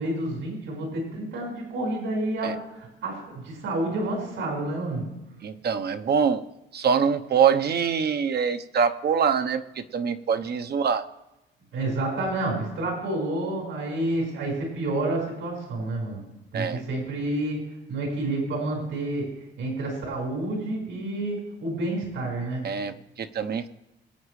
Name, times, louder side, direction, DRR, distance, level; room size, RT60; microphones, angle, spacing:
voice 1, 0.0-5.1 11.7-16.2 16.5-17.6 17.9-19.3 19.6-22.6, right 2 dB, 80° right, -1 dB, 5.0 m, -29 dB
voice 2, 5.4-6.4 6.7-11.0 16.5-16.8 22.6-23.7, right 6 dB, 55° right, 9 dB, 0.9 m, -24 dB
23.5 x 8.7 x 3.2 m, 0.97 s
cardioid pair, 90°, 20 cm